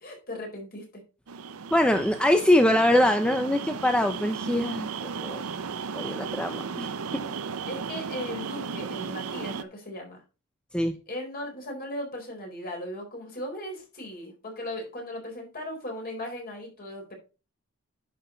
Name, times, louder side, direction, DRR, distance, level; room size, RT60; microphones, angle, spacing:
voice 1, 0.0-0.8 7.7-10.2 11.1-17.1, left 1 dB, 45° left, 1 dB, 4.2 m, -37 dB
sound 1, 1.3-9.6, right 5 dB, 90° right, 0.7 m, -35 dB
voice 2, 1.7-5.4 5.9-7.2 10.7-11.0, left 1 dB, 5° left, 6 dB, 0.7 m, -23 dB
10.0 x 6.2 x 3.9 m, 0.31 s
head